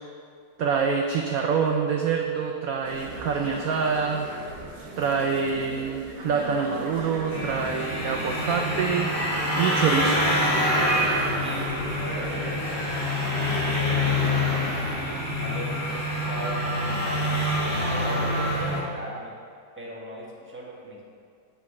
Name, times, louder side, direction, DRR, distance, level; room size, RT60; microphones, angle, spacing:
voice 1, 0.6-4.3 5.0-9.1 9.6-10.2, right 5 dB, 80° right, 3 dB, 0.7 m, -26 dB
sound 1, 2.8-12.8, right 2 dB, 60° right, 1.5 m, -39 dB
sound 2, 7.3-18.8, left 1 dB, 60° left, 2.9 m, -26 dB
voice 2, 11.4-14.6 15.4-17.2 17.7-19.3 19.8-21.0, right 1 dB, 10° right, -4 dB, 0.9 m, -38 dB
7.1 x 6.3 x 4.8 m, 2.3 s
omnidirectional pair, 2.1 m